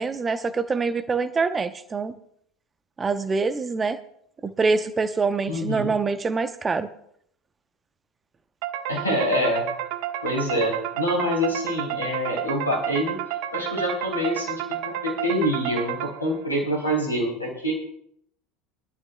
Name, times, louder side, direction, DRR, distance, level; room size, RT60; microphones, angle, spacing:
voice 1, 0.0-2.1 3.0-4.0 4.4-6.9, right 4 dB, 20° right, 11 dB, 0.8 m, -25 dB
voice 2, 5.5-5.9 8.9-9.7 10.2-13.1 13.5-17.7, equal, 85° left, -2 dB, 3.8 m, -26 dB
sound 1, 8.6-16.5, right 12 dB, 55° right, 0.6 m, -31 dB
23.0 x 12.0 x 2.3 m, 0.69 s
figure-of-eight pair, 70°, 0 cm